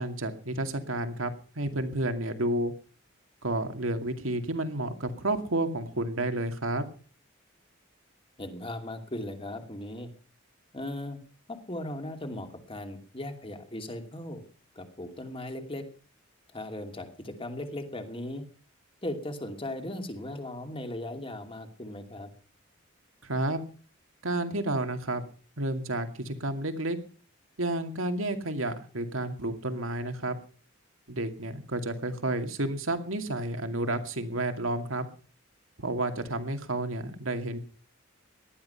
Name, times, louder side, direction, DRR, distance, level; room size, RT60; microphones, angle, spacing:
voice 1, 0.0-2.7 3.4-6.9 23.2-23.6 24.2-25.2 25.6-27.0 27.6-30.4 31.1-35.1 35.8-37.6, right 1 dB, 75° right, 7 dB, 2.4 m, -31 dB
voice 2, 8.4-10.1 10.7-11.2 11.5-14.4 14.7-15.8 16.5-18.4 19.0-22.3, left 1 dB, 25° left, 5 dB, 2.7 m, -37 dB
18.5 x 12.5 x 5.8 m, 0.40 s
head